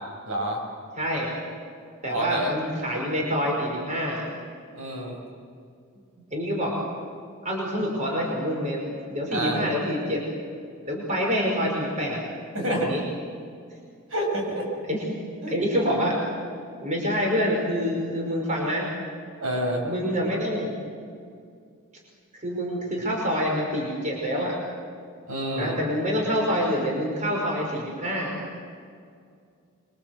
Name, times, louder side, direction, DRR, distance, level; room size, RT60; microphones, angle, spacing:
voice 1, 0.3-0.6 2.1-2.5 4.7-5.1 9.3-9.7 12.5-12.9 14.1-14.7 15.4-15.6 19.4-19.8 25.3-25.8, right 1 dB, 65° right, 0 dB, 7.3 m, -28 dB
voice 2, 1.0-1.3 2.0-4.2 6.3-6.7 7.4-8.8 9.1-10.2 10.9-12.2 12.6-13.0 14.9-15.0 15.5-16.2 16.8-18.9 19.8-20.8 22.3-24.6 25.6-28.4, equal, 35° right, -1 dB, 5.4 m, -26 dB
26.5 x 24.5 x 7.9 m, 2.3 s
head